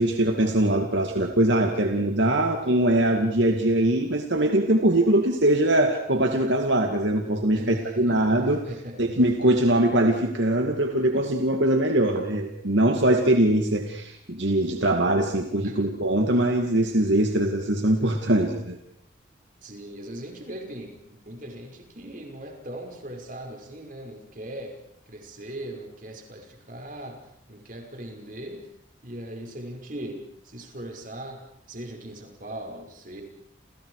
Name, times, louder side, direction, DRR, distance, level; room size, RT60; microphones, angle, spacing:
voice 1, 0.0-8.6 9.0-18.8, right 1 dB, 70° right, 3 dB, 2.3 m, -22 dB
voice 2, 7.5-9.0 15.6-15.9 19.6-24.8 25.1-27.2 27.5-28.7 29.0-33.2, right 1 dB, 45° right, 2 dB, 5.7 m, -39 dB
30.0 x 30.0 x 4.9 m, 0.73 s
head